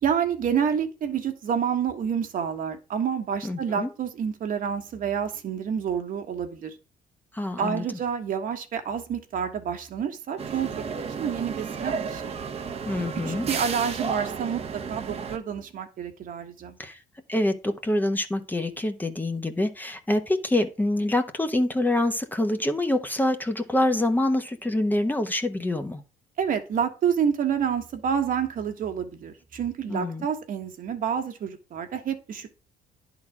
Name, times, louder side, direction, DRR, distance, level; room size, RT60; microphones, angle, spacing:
voice 1, 0.0-6.8 7.6-12.4 13.3-16.8 26.4-32.5, right 7 dB, 55° right, 1.5 m, -28 dB
voice 2, 3.4-3.9 7.3-7.8 12.8-13.5 16.8-17.0 17.3-26.0 29.9-30.2, left 1 dB, 10° left, 1.0 m, -26 dB
sound 1, 10.4-15.4, right 5 dB, 40° right, 1.0 m, -33 dB
10.5 x 4.0 x 5.9 m
cardioid pair, 110°, 17 cm